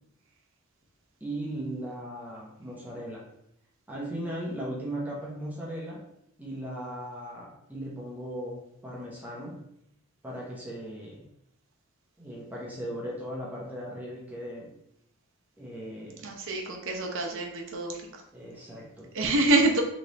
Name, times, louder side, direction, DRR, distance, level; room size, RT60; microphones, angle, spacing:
voice 1, 1.2-3.2 3.9-6.0 6.4-9.6 10.2-11.2 12.2-14.8 15.6-16.3 18.3-19.1, right 1 dB, 10° right, -5 dB, 0.9 m, -37 dB
voice 2, 16.2-18.0 19.1-19.8, right 2 dB, 60° right, 1 dB, 0.9 m, -26 dB
3.4 x 3.0 x 4.0 m, 0.76 s
head